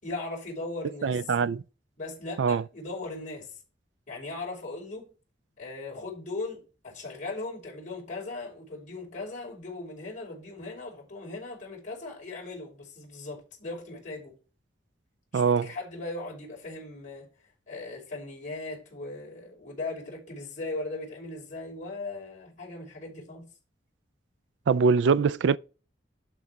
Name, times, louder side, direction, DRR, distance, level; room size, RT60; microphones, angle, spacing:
voice 1, 0.0-1.3 2.0-3.6 4.1-5.1 5.6-14.4 15.3-17.3 17.7-23.5, left 2 dB, 45° left, 5.7 m, -38 dB
voice 2, 1.0-1.6 2.4-2.6 15.3-15.7 24.7-25.6, right 5 dB, 70° right, 0.4 m, -23 dB
12.0 x 4.1 x 4.8 m
head